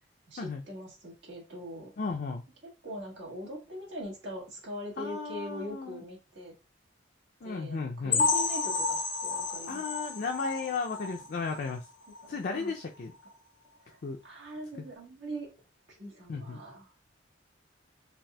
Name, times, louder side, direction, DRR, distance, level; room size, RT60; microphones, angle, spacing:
voice 1, 0.3-1.9 2.8-6.5 7.4-9.8 12.2-12.7 13.8-14.0 14.2-15.5 15.9-17.0, equal, 80° right, -3 dB, 1.5 m, -42 dB
voice 2, 2.0-2.4 5.0-6.0 7.4-8.3 9.7-11.9 12.3-13.1 14.0-14.2 16.3-16.6, left 4 dB, 50° left, 1 dB, 0.4 m, -34 dB
sound 1, 8.1-11.7 12.1-12.3 12.7-12.8 13.2-13.3, left 4 dB, 90° left, 0.7 m, -31 dB
4.0 x 2.4 x 2.2 m, 0.29 s
head